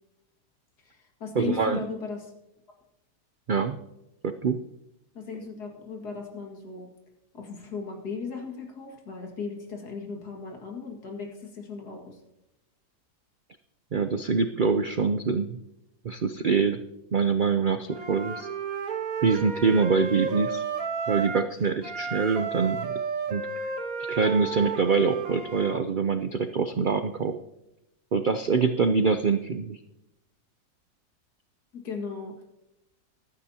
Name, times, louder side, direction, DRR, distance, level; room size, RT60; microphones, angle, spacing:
voice 1, 0.8-2.3 5.1-6.9 7.3-12.2 31.7-32.4, left 5 dB, 75° left, 2 dB, 2.6 m, -37 dB
voice 2, 1.4-1.8 3.5-3.8 4.2-4.6 13.9-15.6 16.0-16.8 17.1-18.5 19.2-20.6 21.1-22.9 23.3-27.3 28.1-29.8, right 5 dB, 85° right, 9 dB, 0.4 m, -25 dB
Wind instrument woodwind instrument, 17.9-21.5 21.8-25.8, right 5 dB, 60° right, 1.6 m, -32 dB
15.5 x 12.0 x 2.8 m, 0.90 s
omnidirectional pair, 1.7 m